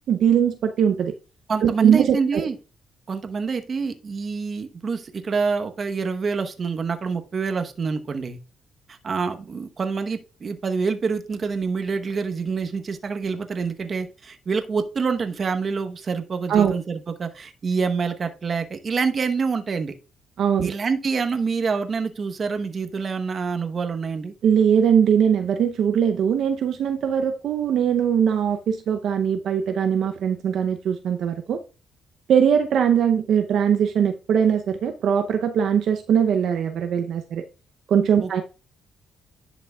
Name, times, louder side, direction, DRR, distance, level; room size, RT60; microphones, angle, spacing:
voice 1, 0.1-1.1 1.6-2.4 16.5-16.8 20.4-20.7 24.4-31.6 32.3-37.4 37.9-38.4, right 8 dB, 70° right, 0.6 m, -21 dB
voice 2, 1.5-2.6 3.1-8.4 8.9-19.9 20.6-24.3 38.2-38.4, right 5 dB, 45° right, 0.9 m, -26 dB
10.5 x 6.0 x 2.3 m
cardioid pair, 90°, 0 cm